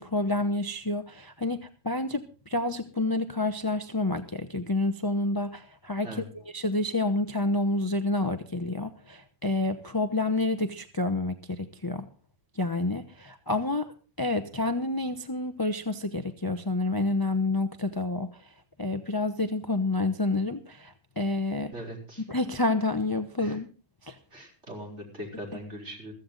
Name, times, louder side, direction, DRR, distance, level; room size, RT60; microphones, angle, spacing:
voice 1, 0.0-12.1 12.5-13.9 14.2-18.5 18.8-21.7 22.3-23.7 24.0-24.2, left 2 dB, 20° left, 8 dB, 0.8 m, -29 dB
voice 2, 21.7-22.2 23.4-23.6 24.3-26.1, right 1 dB, 50° right, 0 dB, 4.8 m, -40 dB
15.5 x 14.5 x 3.9 m, 0.36 s
omnidirectional pair, 1.5 m